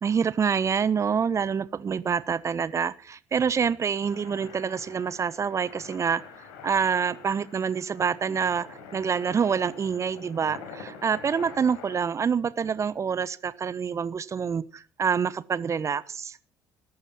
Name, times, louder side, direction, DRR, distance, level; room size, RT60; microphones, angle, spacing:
voice 1, 0.0-6.2 6.6-16.4, right 6 dB, 35° right, 18 dB, 1.0 m, -27 dB
sound 1, 4.0-12.0, left 5 dB, 65° left, 4.5 m, -45 dB
20.0 x 11.5 x 6.0 m, 0.42 s
figure-of-eight pair, 50°, 9 cm